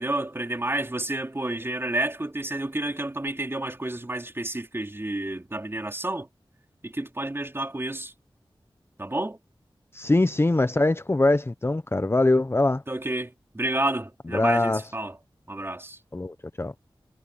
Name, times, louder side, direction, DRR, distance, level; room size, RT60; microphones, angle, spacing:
voice 1, 0.0-6.3 6.8-8.1 9.0-9.4 12.9-15.2 15.5-16.0, right 1 dB, 25° right, 3.8 m, -30 dB
voice 2, 9.9-12.8 14.3-14.8 16.1-16.7, left 2 dB, 25° left, 0.7 m, -22 dB
wide cardioid pair, 70°, 9 cm